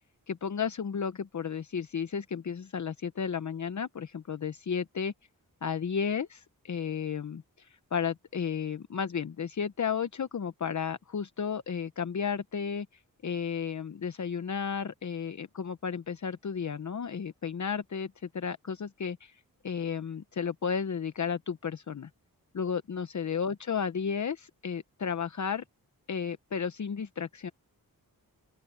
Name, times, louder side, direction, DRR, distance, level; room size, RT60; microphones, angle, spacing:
voice 1, 0.3-5.1 5.6-12.9 13.2-22.1 22.5-25.6 26.1-27.5, left 6 dB, 50° left, 0.9 m, -33 dB
open air
wide cardioid pair, 80°, 36 cm